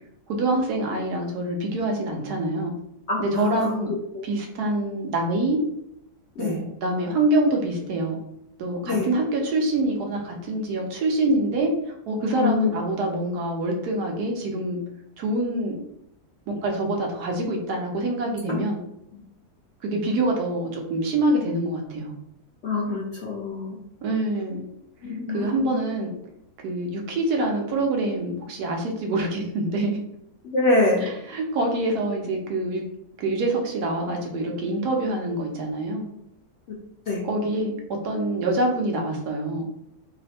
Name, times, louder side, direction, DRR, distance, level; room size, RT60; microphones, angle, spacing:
voice 1, 0.3-2.7 3.2-3.9 4.2-5.6 6.4-8.2 8.6-14.8 15.2-15.8 16.6-18.8 19.8-22.1 24.0-24.7 25.3-26.1 26.6-30.0 31.3-32.8 33.2-36.1 37.2-37.7 38.0-39.7, right 2 dB, 75° right, 1 dB, 1.3 m, -25 dB
voice 2, 3.1-3.8 4.1-4.2 6.4-6.6 8.8-9.1 12.3-12.7 18.5-18.6 22.6-23.8 25.0-25.8 30.5-31.1 36.7-36.8 37.1-37.2, left 3 dB, 65° left, -3 dB, 0.7 m, -25 dB
3.1 x 2.1 x 4.1 m, 0.79 s
omnidirectional pair, 1.7 m